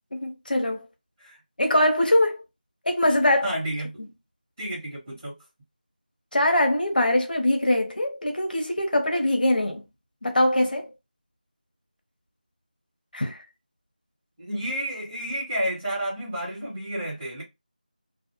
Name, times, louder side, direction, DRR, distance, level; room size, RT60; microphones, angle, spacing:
voice 1, 0.1-0.8 1.6-2.4 2.9-3.5 6.3-9.8 10.2-10.9 13.1-13.4, left 1 dB, 75° left, 0.8 m, -22 dB
voice 2, 3.4-4.0 4.6-5.3 14.4-17.4, right 1 dB, 15° right, 1.3 m, -30 dB
2.4 x 2.1 x 2.9 m
figure-of-eight pair, 175°, 5 cm